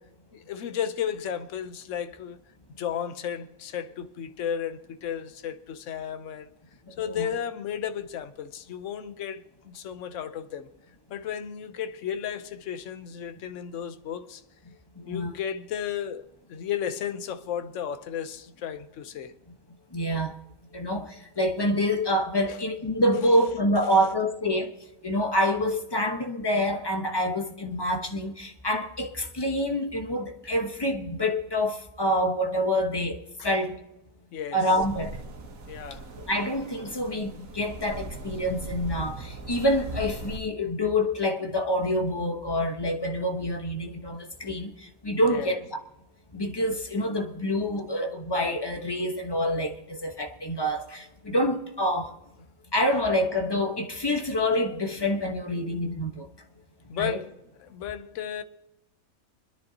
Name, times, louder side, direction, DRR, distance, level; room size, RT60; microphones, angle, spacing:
voice 1, 0.3-2.4 2.8-6.5 7.0-10.7 11.1-14.4 15.1-16.2 16.5-19.3 22.5-22.6 23.9-24.0 33.4-33.5 34.3-34.7 35.7-36.1 45.3-45.6 56.9-57.3 57.6-58.4, left 9 dB, 65° left, 1.1 m, -34 dB
voice 2, 15.0-15.3 19.9-20.4 20.7-24.8 25.0-33.7 34.5-35.2 36.3-45.6 46.3-52.1 52.7-56.3 57.0-57.2, equal, 20° left, 1.1 m, -27 dB
sound 1, 34.8-40.4, right 2 dB, 70° right, 1.6 m, -39 dB
25.5 x 10.5 x 2.8 m
omnidirectional pair, 1.5 m